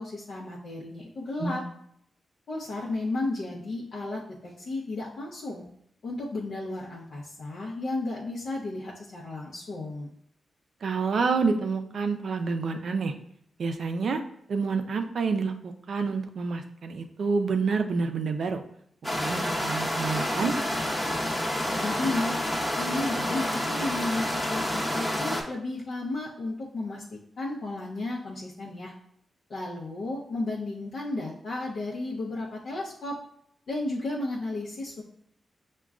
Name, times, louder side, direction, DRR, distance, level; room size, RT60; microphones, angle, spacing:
voice 1, 0.0-1.6 2.5-5.7 6.0-10.1 21.6-22.3 22.8-28.9 29.5-33.2 33.7-35.0, left 2 dB, 70° left, -5 dB, 0.6 m, -33 dB
voice 2, 10.8-13.1 13.6-14.2 14.5-18.6 19.2-20.5, right 4 dB, 70° right, 6 dB, 0.4 m, -28 dB
sound 1, 19.0-25.4, left 1 dB, 25° left, 0.7 m, -29 dB
6.0 x 2.2 x 2.3 m, 0.70 s
cardioid pair, 80°, 0 cm